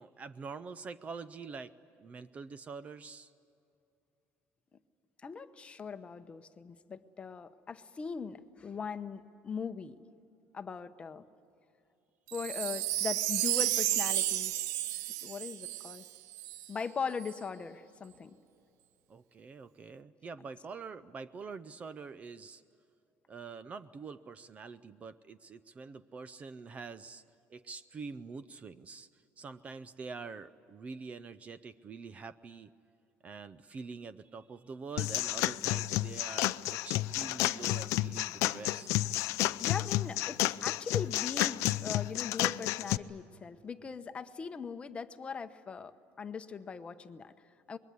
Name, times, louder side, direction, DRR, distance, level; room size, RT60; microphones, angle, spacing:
voice 1, 0.0-3.3 19.1-22.6 23.3-27.2 27.5-32.7 33.2-39.1, right 5 dB, 25° right, 14 dB, 0.5 m, -45 dB
voice 2, 5.2-10.0 10.5-11.2 12.3-14.5 15.2-16.0 16.7-18.4 39.6-45.9 46.2-47.8, left 5 dB, 20° left, 9 dB, 0.9 m, -40 dB
Wind chime, 12.3-16.7 17.2-17.3, right 14 dB, 85° right, 0.6 m, -32 dB
sound 1, 35.0-43.0, left 17 dB, 70° left, 0.6 m, -31 dB
25.5 x 22.0 x 9.5 m, 2.6 s
cardioid pair, 160°, 5 cm